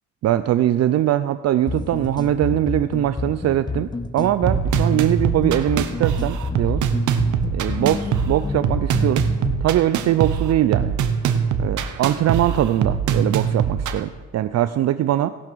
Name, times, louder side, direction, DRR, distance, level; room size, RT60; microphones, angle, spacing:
voice 1, 0.2-6.8 7.5-9.3 9.6-11.0 11.6-15.3, right 12 dB, 60° right, 12 dB, 0.5 m, -21 dB
sound 1, 1.7-9.7, left 3 dB, 15° left, 0.6 m, -29 dB
sound 2, 4.5-14.0, right 7 dB, 75° right, 1.0 m, -23 dB
17.0 x 5.9 x 6.1 m, 1.3 s
cardioid pair, 90°, 30 cm